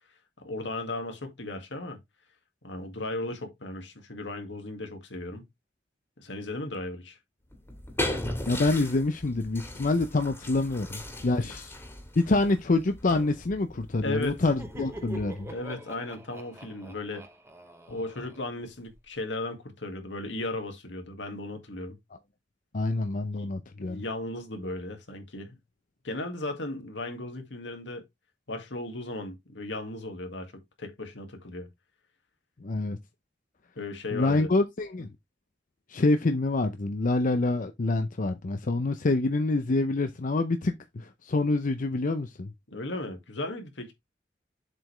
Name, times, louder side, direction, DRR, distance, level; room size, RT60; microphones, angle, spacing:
voice 1, 0.4-2.0 2.6-5.5 6.2-7.2 14.0-14.5 15.5-17.3 17.9-22.0 23.3-23.5 23.8-25.6 26.0-28.0 28.5-30.5 30.8-31.7 33.8-34.5 42.7-43.9, left 2 dB, 80° left, 2.1 m, -36 dB
sound 1, 7.5-15.6, left 1 dB, 15° left, 2.0 m, -38 dB
voice 2, 8.5-11.7 12.2-15.5 22.7-24.0 32.6-33.0 34.1-35.1 35.9-42.5, left 2 dB, 45° left, 0.6 m, -26 dB
Laughter, 14.3-19.0, right 1 dB, 15° right, 1.2 m, -45 dB
7.5 x 5.1 x 3.4 m
head